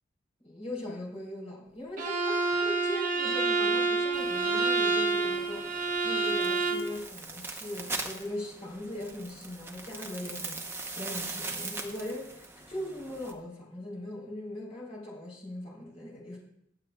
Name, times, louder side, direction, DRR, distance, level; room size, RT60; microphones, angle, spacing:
voice 1, 0.4-16.4, left 1 dB, 30° left, -4 dB, 3.7 m, -40 dB
Bowed string instrument, 2.0-6.9, right 3 dB, 40° right, 1.2 m, -28 dB
sound 1, 4.1-13.3, right 3 dB, 10° right, 0.8 m, -41 dB
21.0 x 7.6 x 2.3 m, 0.71 s
head